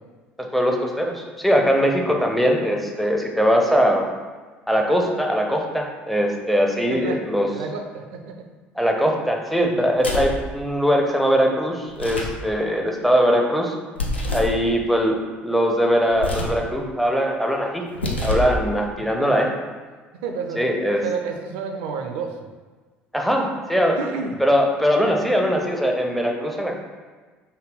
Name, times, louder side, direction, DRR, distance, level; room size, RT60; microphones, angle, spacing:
voice 1, 0.4-4.1 4.7-7.5 8.8-13.7 14.3-17.8 18.2-19.5 20.6-21.0 23.1-24.0 24.4-26.7, equal, ahead, 1 dB, 0.5 m, -21 dB
voice 2, 6.9-7.2 7.5-8.4 19.2-19.3 20.2-20.6 21.0-22.5 24.0-24.4, right 5 dB, 60° right, 4 dB, 0.4 m, -30 dB
sound 1, 10.0-10.4 11.9-12.4 14.0-14.6 16.1-16.6 17.9-18.6, left 2 dB, 85° left, 0.4 m, -26 dB
3.3 x 2.2 x 3.5 m, 1.4 s
figure-of-eight pair, 60°, 6 cm